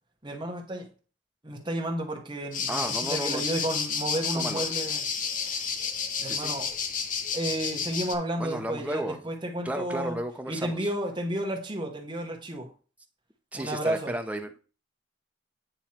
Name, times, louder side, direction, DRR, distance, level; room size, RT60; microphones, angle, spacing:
voice 1, 0.2-0.9 1.4-5.0 5.4-5.6 6.2-6.7 7.3-10.2 10.5-12.7 13.5-14.1, right 1 dB, 25° right, 1.1 m, -32 dB
sound 1, 2.5-8.2, left 6 dB, 45° left, 0.7 m, -31 dB
voice 2, 2.7-3.4 4.3-4.6 6.2-6.5 8.4-9.2 9.6-10.9 13.5-14.6, right 1 dB, 5° right, 0.6 m, -33 dB
8.9 x 3.1 x 4.3 m
head